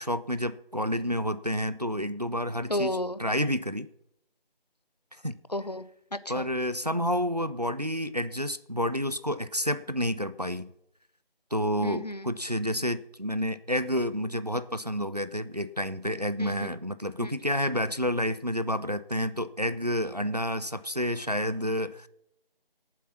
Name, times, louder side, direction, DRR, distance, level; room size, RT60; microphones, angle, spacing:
voice 1, 0.0-2.9 3.2-3.9 5.2-5.4 6.3-10.7 11.5-22.1, equal, 45° right, 14 dB, 0.5 m, -29 dB
voice 2, 2.7-3.2 5.5-6.5 11.8-12.3 16.4-16.7 17.2-17.3, left 1 dB, 45° left, 14 dB, 0.6 m, -33 dB
17.0 x 7.4 x 5.8 m, 0.76 s
figure-of-eight pair, 175°, 30 cm